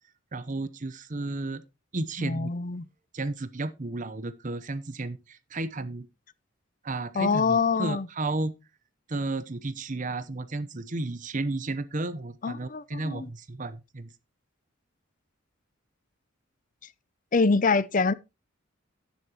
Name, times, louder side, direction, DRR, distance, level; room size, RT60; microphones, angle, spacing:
voice 1, 0.3-1.6 1.9-2.5 3.1-6.1 6.8-8.5 9.1-14.1, right 2 dB, 40° right, 0.8 m, -33 dB
voice 2, 2.2-2.8 7.2-8.1 12.4-13.3 17.3-18.1, left 4 dB, 40° left, 0.6 m, -25 dB
11.5 x 9.8 x 2.9 m
head